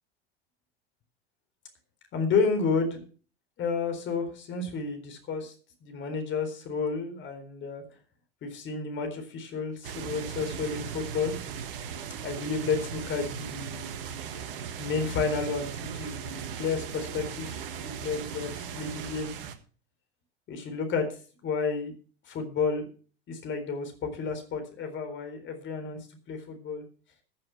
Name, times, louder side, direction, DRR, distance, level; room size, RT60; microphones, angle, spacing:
voice 1, 2.1-3.0 3.6-5.5 5.8-7.8 8.4-11.3 12.2-14.2 14.8-19.3 20.5-21.1 21.4-21.9 22.3-22.9 23.3-26.0 26.3-26.8, left 5 dB, 40° left, 6 dB, 4.1 m, -31 dB
sound 1, 9.8-19.6, right 7 dB, 65° right, 1.6 m, -38 dB
15.0 x 7.7 x 5.8 m, 0.39 s
figure-of-eight pair, 75°, 30 cm